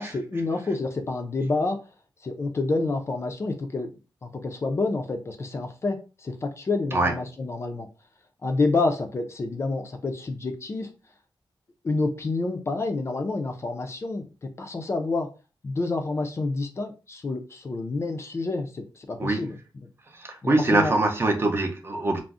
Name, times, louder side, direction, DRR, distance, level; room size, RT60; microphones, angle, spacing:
voice 1, 0.0-1.8 2.2-3.9 4.2-7.9 8.4-10.9 11.8-15.3 15.6-19.6 20.4-20.9, left 3 dB, 35° left, 5 dB, 0.4 m, -28 dB
voice 2, 20.1-22.2, right 2 dB, 30° right, 4 dB, 0.5 m, -23 dB
2.4 x 2.0 x 3.4 m, 0.32 s
wide cardioid pair, 175°, 8 cm